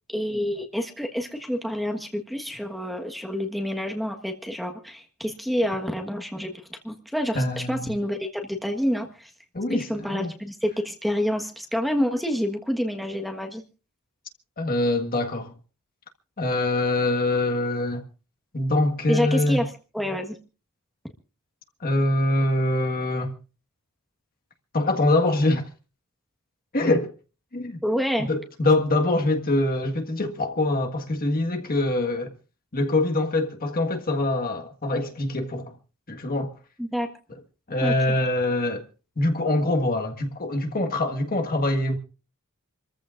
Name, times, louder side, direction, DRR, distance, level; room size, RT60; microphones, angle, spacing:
voice 1, 0.1-9.3 9.7-13.6 19.1-19.7 19.9-20.4 27.8-28.3 36.8-37.1 37.8-37.9, equal, ahead, 1.4 m, -28 dB
voice 2, 7.3-7.9 9.5-10.3 14.6-15.5 16.4-18.1 18.5-19.6 21.8-23.4 24.7-25.7 26.7-27.1 27.5-27.8 28.2-32.3 32.7-35.7 36.1-36.5 37.7-38.8 39.2-42.0, left 2 dB, 40° left, 1.7 m, -24 dB
28.0 x 14.5 x 2.6 m
head